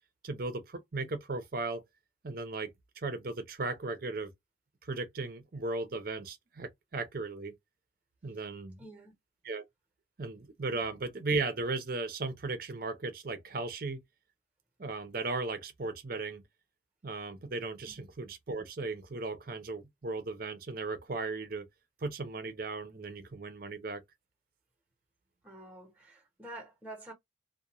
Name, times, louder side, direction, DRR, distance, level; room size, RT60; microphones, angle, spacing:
voice 1, 0.2-1.8 2.2-4.3 4.8-7.5 8.2-8.8 9.4-9.6 10.2-14.0 14.8-16.4 17.0-21.7 22.0-24.0, right 3 dB, 50° right, 0.6 m, -36 dB
voice 2, 8.8-9.1 17.8-18.0 25.4-27.1, right 1 dB, 5° right, 0.8 m, -48 dB
2.4 x 2.2 x 2.9 m
head